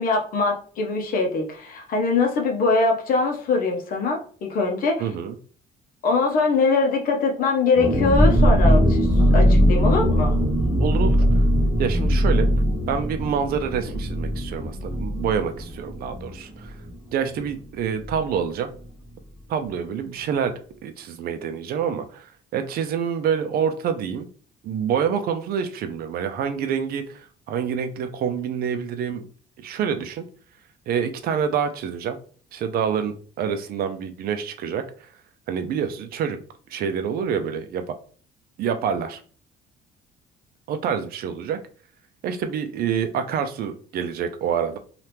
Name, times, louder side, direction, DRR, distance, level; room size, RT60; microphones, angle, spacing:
voice 1, 0.0-5.0 6.0-9.1 9.3-10.3, left 3 dB, 55° left, 2 dB, 0.7 m, -22 dB
voice 2, 5.0-5.4 10.8-11.4 11.8-12.5 12.9-16.7 17.1-18.7 19.5-20.5 20.8-24.3 24.6-29.2 29.6-30.2 30.9-32.2 32.5-35.1 35.5-36.4 36.7-37.9 38.6-39.2 40.7-41.6 42.2-44.8, right 7 dB, 65° right, 8 dB, 0.5 m, -27 dB
sound 1, 7.8-17.2 17.4-17.5 17.9-18.2, equal, 5° right, 0.8 m, -20 dB
2.8 x 2.4 x 3.3 m, 0.43 s
cardioid pair, 110°, 17 cm